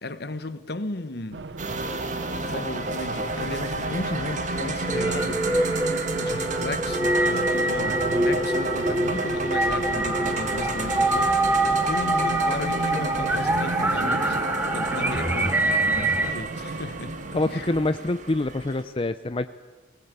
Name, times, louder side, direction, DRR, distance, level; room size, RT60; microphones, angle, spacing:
voice 1, 0.0-1.4 2.4-5.5 6.2-11.4 11.7-14.4 14.7-17.2 17.4-17.7, left 2 dB, 60° left, 1.2 m, -35 dB
Race car auto racing, 1.3-17.9, right 2 dB, 75° right, 0.7 m, -36 dB
sound 1, 1.6-18.8, right 2 dB, 45° right, 1.8 m, -31 dB
sound 2, 4.8-16.3, right 1 dB, 10° right, 1.0 m, -25 dB
voice 2, 17.3-19.5, left 2 dB, 30° left, 0.6 m, -26 dB
20.5 x 19.0 x 8.2 m
head